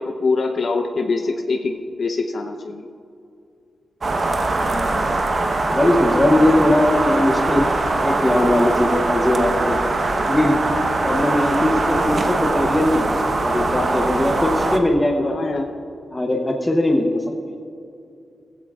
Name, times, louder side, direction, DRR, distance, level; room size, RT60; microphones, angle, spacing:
voice 1, 0.0-1.7 2.0-2.9 7.1-7.3 15.2-15.7, left 3 dB, 50° left, 3 dB, 0.8 m, -24 dB
sound 1, 4.0-14.8, right 2 dB, 35° right, 1.0 m, -21 dB
voice 2, 4.3-5.0 5.7-9.9 10.2-10.8 11.0-15.3 16.1-17.6, left 1 dB, 10° left, 0 dB, 0.9 m, -20 dB
19.0 x 15.5 x 2.4 m, 2.5 s
wide cardioid pair, 165°, 0 cm